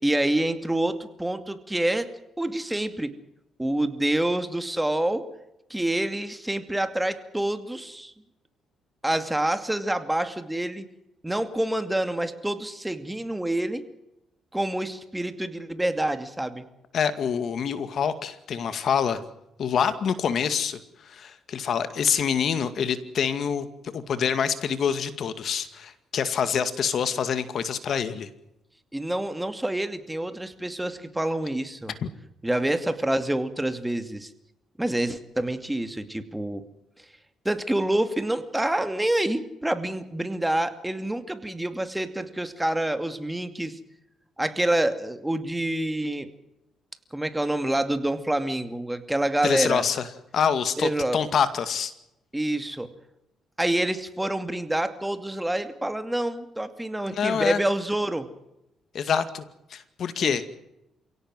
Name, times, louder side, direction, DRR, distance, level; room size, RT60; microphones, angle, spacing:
voice 1, 0.0-2.1 2.4-3.1 3.6-5.2 5.7-8.1 9.0-10.8 11.2-13.8 14.5-16.6 28.9-31.9 32.4-34.3 34.8-36.6 37.4-43.8 44.4-46.3 47.1-49.8 50.8-51.2 52.3-52.9 53.6-58.3 60.2-60.4, right 1 dB, 10° right, 9 dB, 2.5 m, -27 dB
voice 2, 16.9-19.2 19.6-20.8 21.1-23.7 23.9-28.3 32.0-32.1 49.4-50.1 50.3-51.9 57.1-57.6 58.9-59.4 59.7-60.4, left 7 dB, 60° left, 11 dB, 2.2 m, -26 dB
28.5 x 17.5 x 7.7 m, 0.87 s
cardioid pair, 90°, 0 cm